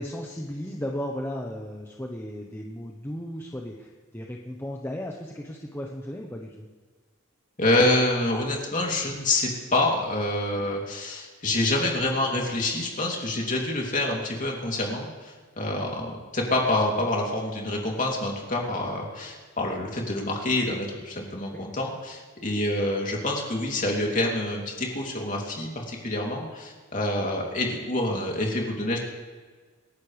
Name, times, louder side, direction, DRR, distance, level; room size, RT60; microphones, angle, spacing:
voice 1, 0.0-6.7 21.5-21.6, equal, 10° left, 0 dB, 1.0 m, -35 dB
voice 2, 7.6-29.0, left 1 dB, 40° left, -1 dB, 3.0 m, -27 dB
27.5 x 11.0 x 3.4 m, 1.4 s
head